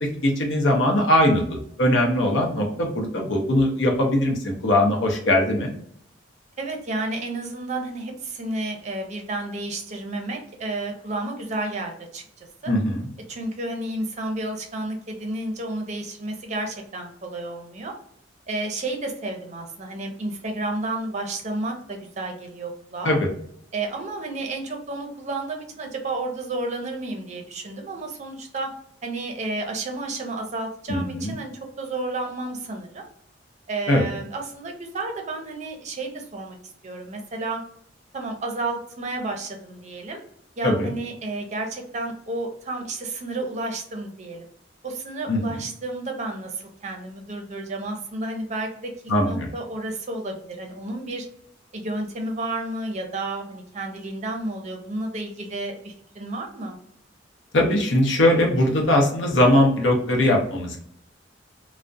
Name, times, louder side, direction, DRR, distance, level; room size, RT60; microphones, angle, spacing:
voice 1, 0.2-1.4 1.8-5.7 12.7-13.1 23.0-23.3 30.9-31.3 33.9-34.0 40.6-40.9 45.3-45.6 49.1-49.5 57.5-60.8, left 1 dB, 70° left, 1 dB, 0.7 m, -20 dB
voice 2, 6.6-12.7 13.3-17.9 18.5-23.2 23.7-28.7 29.0-31.5 31.8-33.0 33.7-36.6 36.8-37.6 38.1-40.2 40.6-44.5 44.8-51.3 51.7-56.8, right 2 dB, 40° right, 2 dB, 0.5 m, -31 dB
2.3 x 2.1 x 2.5 m, 0.66 s
head